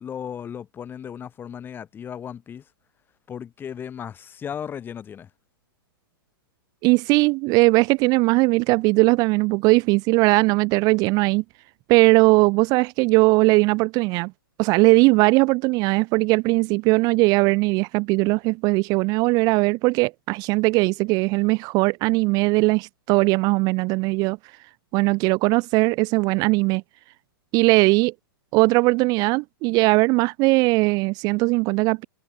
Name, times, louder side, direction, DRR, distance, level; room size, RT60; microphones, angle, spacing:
voice 1, 0.0-2.6 3.3-5.3, left 8 dB, 15° left, 0.8 m, -35 dB
voice 2, 6.8-11.4 11.9-14.3 14.6-24.4 24.9-26.8 27.5-28.1 28.5-32.0, right 25 dB, 30° right, 0.5 m, -19 dB
hypercardioid pair, 130°, 12 cm